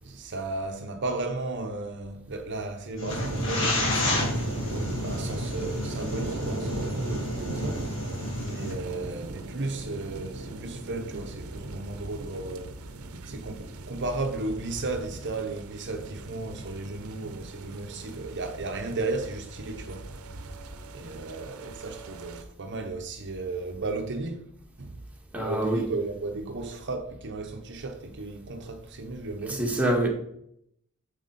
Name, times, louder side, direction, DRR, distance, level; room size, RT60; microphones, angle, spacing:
voice 1, 0.0-4.3 5.0-12.8 13.2-20.1 20.9-24.5 24.8-25.0 25.4-29.7, right 2 dB, 55° right, 0.9 m, -34 dB
sound 1, 3.0-8.7, left 2 dB, 65° left, 3.1 m, -31 dB
sound 2, 3.1-22.4, right 2 dB, 80° right, 0.9 m, -38 dB
voice 2, 25.3-25.9 29.5-30.1, right 1 dB, 5° right, 1.9 m, -25 dB
9.0 x 7.1 x 4.2 m
head